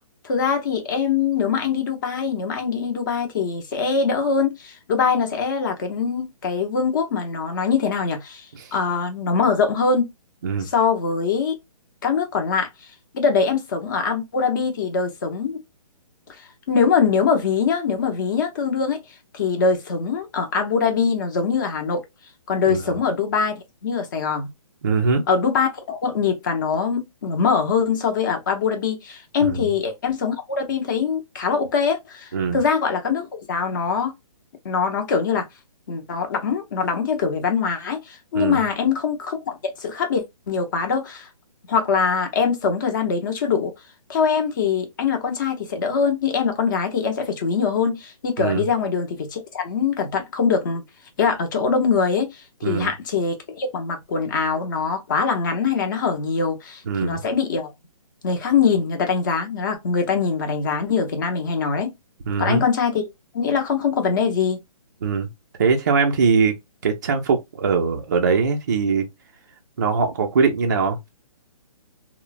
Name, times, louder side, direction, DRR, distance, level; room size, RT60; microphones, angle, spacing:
voice 1, 0.2-10.1 10.6-11.5 12.0-12.7 13.1-15.6 16.4-19.0 19.3-22.0 22.5-23.5 23.8-24.5 25.3-34.1 34.6-35.5 35.9-41.3 41.7-43.7 44.1-50.8 51.2-57.7 58.2-61.9 62.4-63.0 63.3-64.6, left 5 dB, 35° left, 0.7 m, -23 dB
voice 2, 24.8-25.3 29.4-29.7 32.3-32.6 38.3-38.6 48.4-48.7 52.6-52.9 56.9-57.2 62.3-62.6 65.0-65.3 65.6-66.6 66.8-69.0 69.8-71.1, right 5 dB, 30° right, 0.4 m, -21 dB
3.0 x 2.0 x 2.3 m
hypercardioid pair, 165°, 19 cm